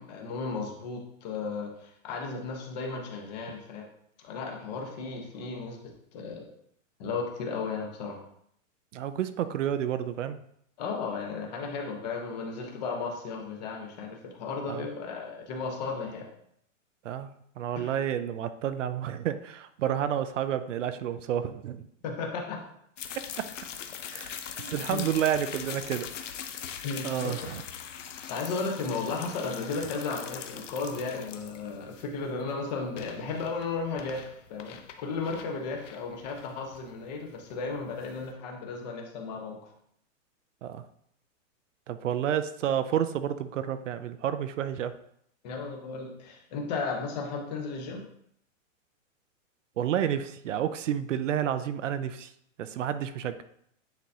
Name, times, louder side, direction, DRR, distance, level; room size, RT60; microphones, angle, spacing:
voice 1, 0.0-3.9 4.2-6.5 7.0-8.2 10.8-16.2 17.7-18.0 22.0-22.7 24.6-25.1 26.8-27.5 28.3-39.6 45.4-48.0, left 4 dB, 30° left, 1 dB, 1.1 m, -35 dB
voice 2, 8.9-10.4 14.7-14.9 17.0-21.9 23.4-23.5 24.1-26.1 27.0-27.6 40.6-40.8 41.9-44.9 49.8-52.3 52.6-53.4, right 10 dB, 65° right, 12 dB, 0.6 m, -30 dB
sound 1, 23.0-38.3, left 8 dB, 65° left, 0.8 m, -42 dB
9.3 x 4.0 x 2.8 m, 0.70 s
hypercardioid pair, 165°, 40 cm